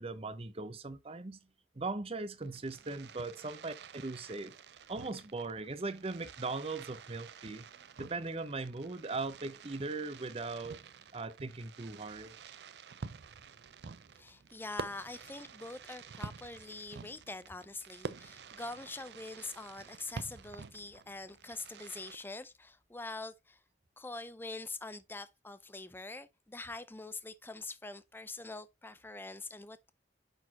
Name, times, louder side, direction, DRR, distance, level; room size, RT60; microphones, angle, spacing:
voice 1, 0.0-1.4 1.7-4.5 4.9-7.7 8.0-10.8 11.1-12.3, right 3 dB, 35° right, 0.7 m, -39 dB
Fireworks, 2.3-22.1, right 5 dB, 70° right, 0.5 m, -49 dB
voice 2, 14.1-23.6 24.0-29.9, left 3 dB, 10° left, 0.5 m, -44 dB
9.0 x 4.2 x 2.9 m
head